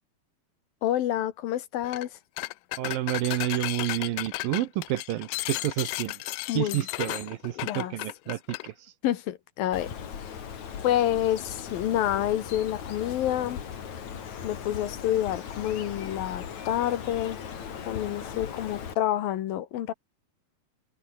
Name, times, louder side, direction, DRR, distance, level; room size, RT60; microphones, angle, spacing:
voice 1, 0.8-2.1 6.5-7.2 7.6-7.9 9.0-9.9 10.8-13.6 14.4-17.4 17.8-19.9, left 12 dB, 70° left, 3.0 m, -28 dB
sound 1, 1.8-2.1 2.4-8.7, left 20 dB, 85° left, 2.0 m, -34 dB
voice 2, 2.8-6.2 6.6-8.7, right 15 dB, 75° right, 2.6 m, -30 dB
Bird, 9.7-18.9, left 7 dB, 50° left, 3.6 m, -38 dB
omnidirectional pair, 4.5 m